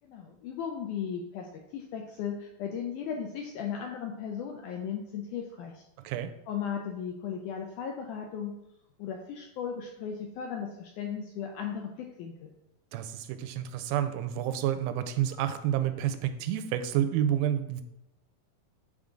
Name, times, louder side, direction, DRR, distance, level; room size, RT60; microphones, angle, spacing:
voice 1, 0.0-5.8 6.5-8.5 9.0-12.5, left 7 dB, 85° left, 2 dB, 1.8 m, -36 dB
voice 2, 12.9-17.8, right 10 dB, 90° right, 10 dB, 2.4 m, -29 dB
8.6 x 3.6 x 3.8 m, 0.85 s
omnidirectional pair, 4.1 m